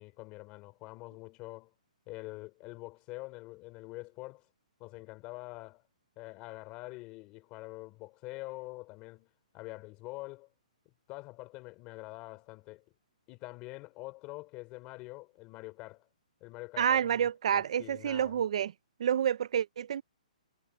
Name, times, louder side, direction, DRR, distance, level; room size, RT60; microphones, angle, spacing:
voice 1, 0.0-1.7 2.1-4.4 4.8-5.8 6.2-9.3 9.5-10.5 11.1-12.8 13.3-16.1 16.4-18.4, left 22 dB, 20° left, 3.2 m, -45 dB
voice 2, 16.8-18.7 19.0-20.0, right 9 dB, 50° right, 0.4 m, -28 dB
hypercardioid pair, 165°, 4 cm